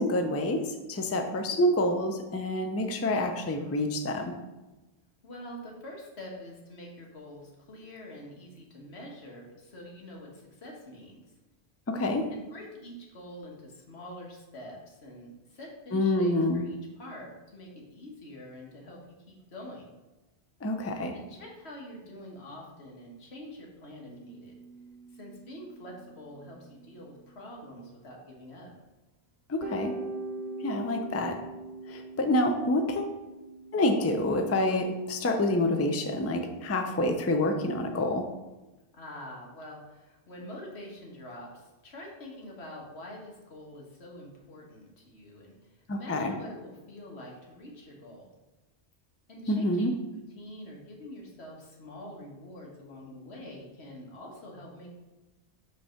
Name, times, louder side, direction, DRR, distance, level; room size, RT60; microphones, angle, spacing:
voice 1, 0.0-4.3 11.9-12.3 15.9-16.6 20.6-21.1 29.5-29.9 30.6-31.4 31.9-33.2 33.7-38.3 45.9-46.3 49.5-49.9, left 1 dB, 20° left, 5 dB, 0.4 m, -27 dB
voice 2, 5.2-11.2 12.3-19.0 19.3-19.9 21.1-24.5 25.1-28.7 30.4-30.5 38.9-48.3 49.3-49.9 50.4-55.0, left 1 dB, 90° left, -1 dB, 1.6 m, -45 dB
sound 1, 24.0-28.5 28.8-28.9 29.6-37.0, right 2 dB, 85° right, 0.9 m, -44 dB
5.3 x 3.4 x 5.7 m, 1.1 s
omnidirectional pair, 1.1 m